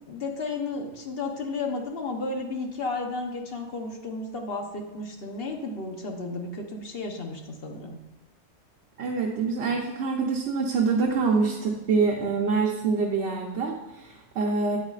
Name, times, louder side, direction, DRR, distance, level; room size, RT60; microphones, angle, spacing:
voice 1, 0.1-8.0, left 3 dB, 55° left, 3 dB, 1.1 m, -33 dB
voice 2, 9.0-14.8, right 4 dB, 60° right, 1 dB, 1.0 m, -25 dB
9.2 x 8.1 x 2.4 m, 1.0 s
omnidirectional pair, 1.3 m